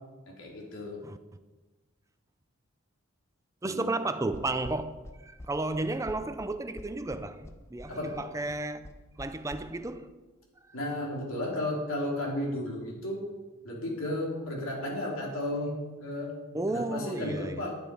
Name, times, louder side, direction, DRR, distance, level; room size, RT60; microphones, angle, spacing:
voice 1, 0.3-1.0 3.6-3.9 7.9-8.2 10.7-13.2 13.6-16.4 16.7-17.7, left 1 dB, 85° left, 3.7 m, -33 dB
voice 2, 3.6-8.8 9.2-10.2 16.5-17.7, right 2 dB, 15° right, 0.4 m, -33 dB
sound 1, 4.3-9.6, left 1 dB, 15° left, 0.7 m, -46 dB
11.5 x 10.5 x 5.5 m
head